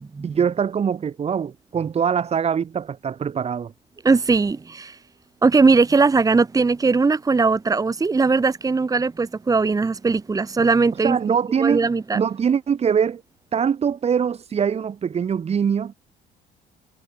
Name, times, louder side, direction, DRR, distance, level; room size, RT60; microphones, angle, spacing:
voice 1, 0.2-3.7 11.0-11.8 12.1-13.2 13.5-15.9, right 7 dB, 40° right, 2.1 m, -23 dB
voice 2, 4.0-5.0 5.4-12.2, right 4 dB, 20° right, 1.8 m, -19 dB
cardioid pair, 110°, 17 cm